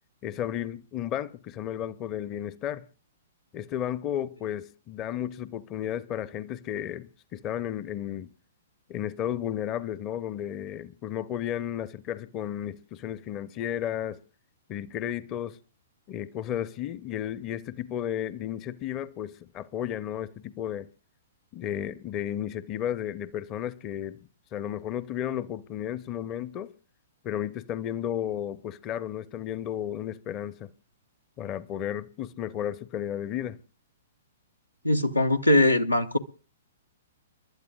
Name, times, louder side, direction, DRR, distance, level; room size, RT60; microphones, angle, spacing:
voice 1, 0.2-2.8 3.5-8.3 8.9-14.2 14.7-15.6 16.1-20.9 21.5-24.2 24.5-26.7 27.2-30.7 31.4-33.6, left 10 dB, 30° left, 0.6 m, -33 dB
voice 2, 34.8-36.2, left 1 dB, 90° left, 0.9 m, -21 dB
30.0 x 12.0 x 2.3 m
figure-of-eight pair, 115°, 0 cm